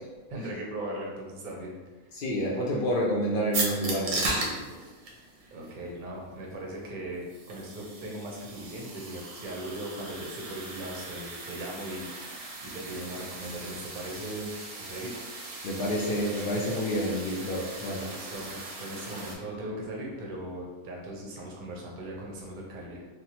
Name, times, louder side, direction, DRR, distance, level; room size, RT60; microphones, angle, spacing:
voice 1, 0.3-1.8 5.5-12.3 12.6-14.5 14.8-15.1 17.8-23.0, right 1 dB, 50° right, -2 dB, 0.6 m, -39 dB
voice 2, 2.2-4.7 15.6-18.0, equal, 85° left, -4 dB, 0.4 m, -29 dB
sound 1, 3.5-19.4, right 2 dB, 85° right, 1.1 m, -38 dB
3.2 x 2.0 x 2.9 m, 1.2 s
omnidirectional pair, 1.5 m